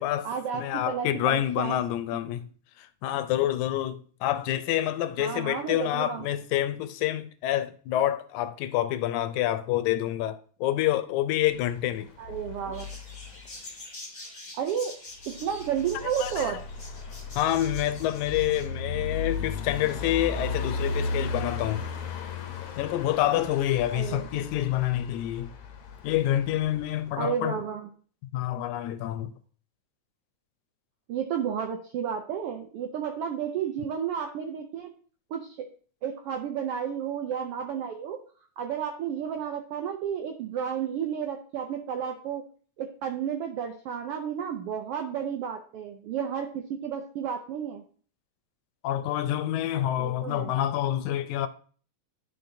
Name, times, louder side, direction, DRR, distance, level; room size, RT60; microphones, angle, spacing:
voice 1, 0.0-1.8 5.2-6.3 12.2-12.9 14.5-14.9 15.3-16.6 23.9-24.5 27.2-27.9 31.1-34.9 35.3-35.7 36.0-38.2 38.6-42.4 42.8-47.8 50.0-50.5, right 8 dB, 80° right, 1.3 m, -32 dB
voice 2, 0.5-2.5 2.8-12.1 16.2-16.5 17.4-21.9 22.8-25.5 26.0-27.6 28.3-29.3 48.8-51.5, left 13 dB, 85° left, 2.0 m, -27 dB
sound 1, 11.5-13.7 15.3-27.1, left 4 dB, 70° left, 1.4 m, -36 dB
animal market, 12.7-18.7, left 2 dB, 20° left, 1.3 m, -45 dB
11.5 x 4.0 x 2.6 m
omnidirectional pair, 3.3 m